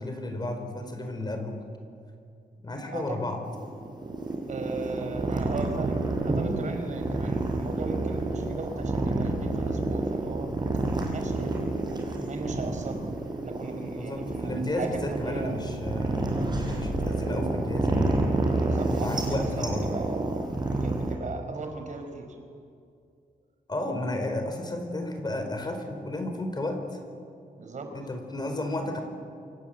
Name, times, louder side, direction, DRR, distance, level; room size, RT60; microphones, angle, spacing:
voice 1, 0.0-1.6 2.6-3.4 14.0-18.1 19.0-19.9 23.7-27.0 27.9-29.0, left 1 dB, 30° left, 5 dB, 4.8 m, -32 dB
sound 1, 3.5-21.2, right 2 dB, 30° right, 5.6 m, -29 dB
voice 2, 4.5-6.0 6.2-10.5 10.9-11.5 12.2-13.0 13.4-15.6 18.6-20.3 20.8-22.3 27.6-27.9, right 3 dB, 55° right, 5 dB, 4.7 m, -37 dB
28.5 x 25.5 x 8.0 m, 2.4 s
cardioid pair, 110°, 15 cm